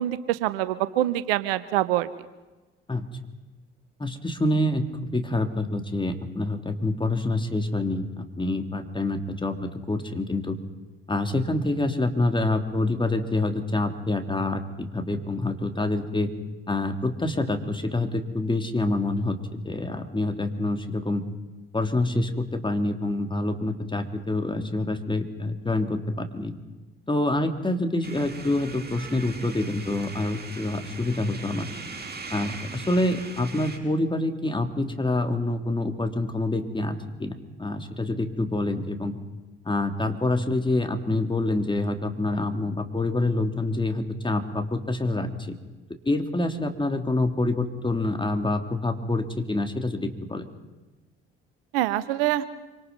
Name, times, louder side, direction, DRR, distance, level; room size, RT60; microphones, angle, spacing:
voice 1, 0.0-2.1 51.7-52.5, right 14 dB, 75° right, 14 dB, 1.0 m, -25 dB
voice 2, 2.9-3.2 4.0-4.8 5.1-10.6 11.1-16.3 16.7-19.4 19.6-21.2 21.7-26.5 27.1-31.7 32.3-37.3 37.6-39.2 39.6-45.3 46.0-50.5, left 2 dB, 15° left, 6 dB, 3.3 m, -26 dB
sound 1, 28.0-33.8, right 4 dB, 30° right, 6.8 m, -40 dB
26.5 x 25.5 x 5.5 m, 1.2 s
figure-of-eight pair, 50°, 29 cm